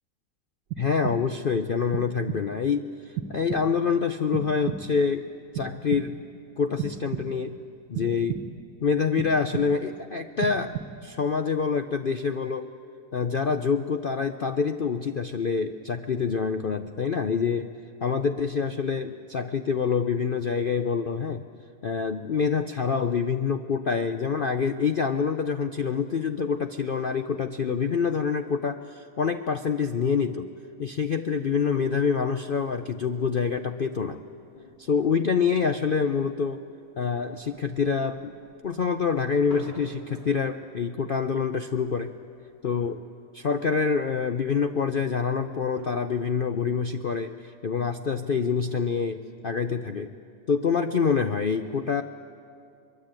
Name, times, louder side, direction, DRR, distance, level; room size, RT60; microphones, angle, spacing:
sound 1, 0.7-1.5 1.9-2.7 3.2-4.0 4.3-5.1 5.5-6.4 6.8-7.6 7.9-8.7 9.2-10.0 10.4-11.2, right 8 dB, 90° right, 1.6 m, -35 dB
voice 1, 0.8-5.3 5.5-6.2 6.6-7.6 7.9-8.4 8.8-10.8 11.0-12.7 13.1-17.7 18.0-21.4 21.8-30.5 30.8-34.2 34.8-36.6 37.0-38.3 38.6-42.1 42.6-43.0 43.3-50.1 50.5-52.0, left 6 dB, 65° left, 8 dB, 0.5 m, -26 dB
sound 2, 31.2-46.3, left 1 dB, 90° left, 5.6 m, -52 dB
22.5 x 22.5 x 9.0 m, 2.4 s
omnidirectional pair, 1.8 m